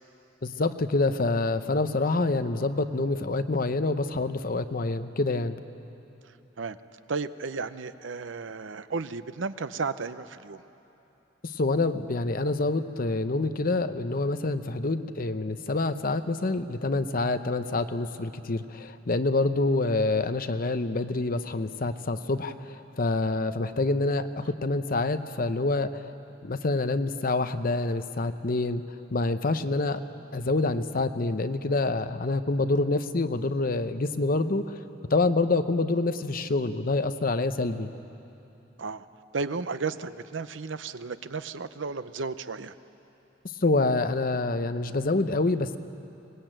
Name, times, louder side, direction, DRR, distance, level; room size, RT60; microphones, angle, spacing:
voice 1, 0.4-5.6 11.4-26.0 26.4-28.8 29.1-30.0 30.3-34.8 35.1-37.9 43.6-45.8, left 2 dB, 50° left, 10 dB, 0.8 m, -27 dB
voice 2, 7.1-10.6 38.8-39.1 39.3-42.7, right 4 dB, 80° right, 13 dB, 0.7 m, -33 dB
24.0 x 20.0 x 9.0 m, 2.9 s
head